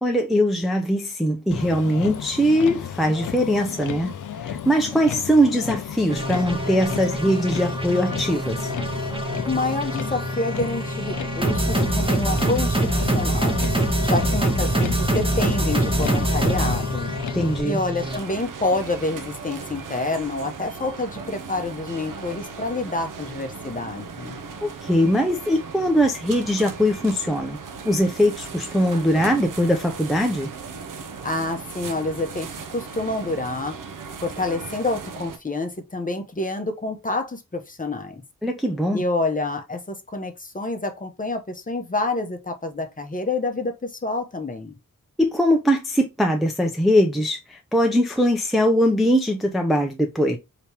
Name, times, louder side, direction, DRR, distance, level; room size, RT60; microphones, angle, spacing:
voice 1, 0.0-8.7 17.3-17.8 24.6-27.6 27.8-30.5 38.4-39.0 45.2-50.4, equal, ahead, 0.5 m, -21 dB
Motor vehicle (road), 1.5-17.6, left 8 dB, 65° left, 0.5 m, -33 dB
sound 1, 6.1-18.2, right 1 dB, 15° right, 0.8 m, -25 dB
voice 2, 9.5-13.6 14.0-17.1 17.6-24.4 31.2-32.5 32.7-33.8 34.2-38.2 38.9-44.8, left 2 dB, 25° left, 0.8 m, -28 dB
sound 2, 18.0-35.4, right 5 dB, 65° right, 0.6 m, -37 dB
3.3 x 2.9 x 2.8 m
cardioid pair, 75°, 34 cm